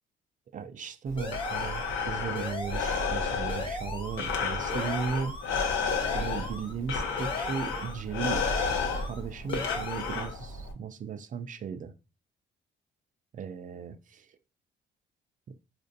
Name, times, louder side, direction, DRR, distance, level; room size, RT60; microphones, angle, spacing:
voice 1, 0.5-5.4 6.1-8.4 9.0-11.9 13.3-14.3, right 6 dB, 40° right, 0.4 m, -36 dB
Breathing, 1.1-10.7, left 5 dB, 80° left, 0.8 m, -32 dB
sound 1, 1.2-2.0 2.4-3.2 3.5-4.3 4.7-5.6 5.9-6.7 7.2-8.0 8.4-9.2 9.5-10.3, left 2 dB, 25° left, 0.8 m, -38 dB
4.3 x 2.5 x 2.6 m
cardioid pair, 90°, 20 cm